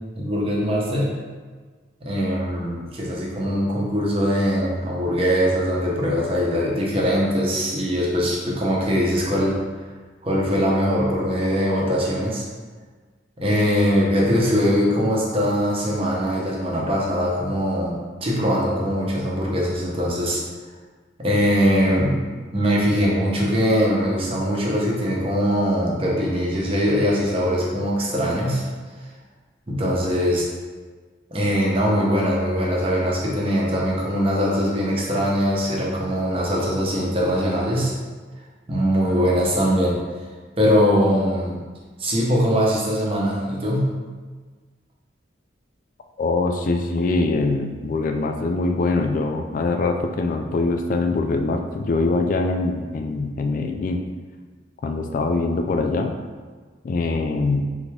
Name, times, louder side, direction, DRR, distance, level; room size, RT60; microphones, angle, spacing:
voice 1, 0.2-1.1 2.0-9.6 10.2-12.4 13.4-20.4 21.2-22.2 22.5-28.7 29.7-30.4 31.3-37.9 38.7-40.0 40.6-41.6 42.0-43.9, equal, 30° right, -4 dB, 0.8 m, -21 dB
voice 2, 46.2-54.0 54.8-56.1 56.8-57.7, left 3 dB, 45° left, 5 dB, 0.3 m, -23 dB
3.9 x 3.4 x 3.3 m, 1.4 s
head